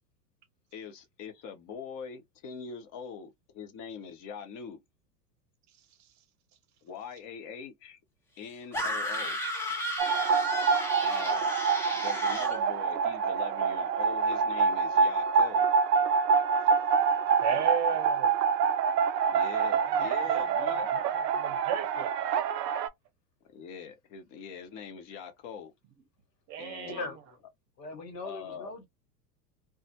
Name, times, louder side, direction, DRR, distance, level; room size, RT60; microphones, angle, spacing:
voice 1, 0.7-4.8 6.8-8.0 8.4-9.4 11.0-11.6 11.9-15.7 17.5-18.0 19.3-20.9 23.5-25.7 26.6-27.2 28.2-28.7, left 6 dB, 40° left, 0.7 m, -43 dB
voice 2, 5.7-6.1 16.8-17.1 17.4-18.4 19.8-20.0 20.3-20.7 21.1-22.4 26.5-27.1, right 9 dB, 35° right, 0.7 m, -36 dB
sound 1, 8.7-12.6, equal, 5° left, 0.3 m, -33 dB
sound 2, 10.0-22.9, right 6 dB, 75° right, 0.6 m, -26 dB
voice 3, 26.8-27.4 27.8-28.9, left 3 dB, 80° left, 1.1 m, -40 dB
2.3 x 2.0 x 2.7 m
hypercardioid pair, 95°, 49 cm